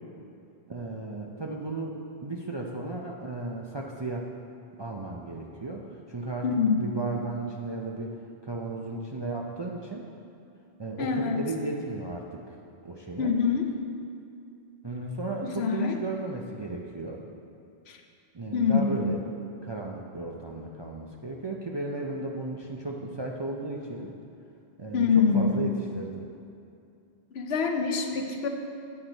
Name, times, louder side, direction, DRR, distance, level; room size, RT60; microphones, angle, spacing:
voice 1, 0.7-4.3 4.8-8.1 8.4-10.1 10.8-13.4 14.8-17.2 18.3-19.2 19.6-24.1 24.8-26.2, right 2 dB, 35° right, -1 dB, 0.4 m, -35 dB
voice 2, 6.4-6.9 11.0-11.4 13.2-13.7 15.4-15.9 17.9-18.0 18.5-19.1 24.9-25.8 27.3-28.5, left 5 dB, 70° left, 4 dB, 0.9 m, -25 dB
8.7 x 7.6 x 3.9 m, 2.5 s
omnidirectional pair, 1.1 m